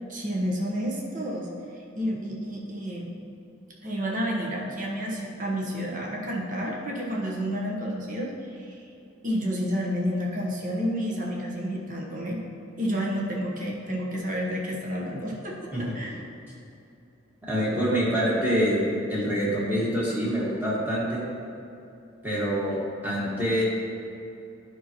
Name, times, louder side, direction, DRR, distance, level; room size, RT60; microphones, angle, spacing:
voice 1, 0.1-1.5 2.0-3.1 3.8-8.8 9.2-12.4 12.8-16.2, equal, 40° right, -2 dB, 1.0 m, -30 dB
voice 2, 17.5-21.2 22.2-22.8 23.0-23.6, equal, 10° right, -7 dB, 1.5 m, -25 dB
10.0 x 5.4 x 3.0 m, 2.8 s
head